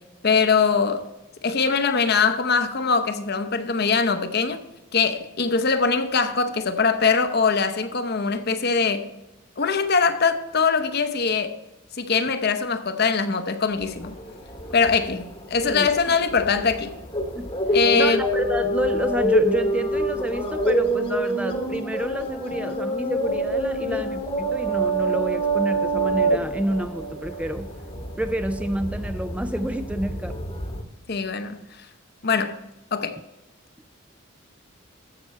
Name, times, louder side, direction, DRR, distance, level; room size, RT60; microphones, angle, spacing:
voice 1, 0.2-1.1 1.4-4.6 4.9-9.1 9.6-11.6 11.9-14.2 14.7-16.9 17.7-18.2 23.8-24.0 31.1-31.6 32.2-32.6 32.9-33.2, left 5 dB, 50° left, 0.8 m, -22 dB
sound 1, 13.8-30.8, right 1 dB, 25° left, 1.0 m, -26 dB
voice 2, 15.6-16.1 17.4-27.7 28.2-30.4, equal, 5° right, 0.3 m, -29 dB
14.5 x 5.9 x 4.4 m
head